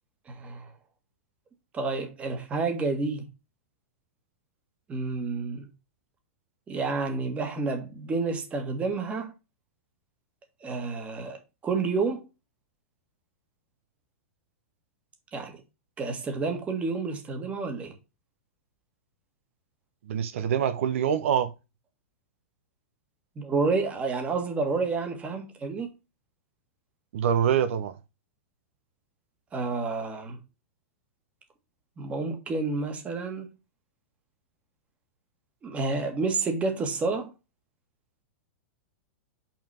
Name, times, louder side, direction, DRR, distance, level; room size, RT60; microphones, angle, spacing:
voice 1, 0.3-0.7 1.7-3.3 4.9-5.6 6.7-9.3 10.6-12.2 15.3-15.6 16.0-17.9 23.3-25.9 29.5-30.4 32.0-33.5 35.6-37.3, right 4 dB, 20° right, 1.7 m, -29 dB
voice 2, 20.1-21.5 27.1-27.9, right 8 dB, 70° right, 0.9 m, -25 dB
5.9 x 5.4 x 4.3 m
supercardioid pair, 145°, 7 cm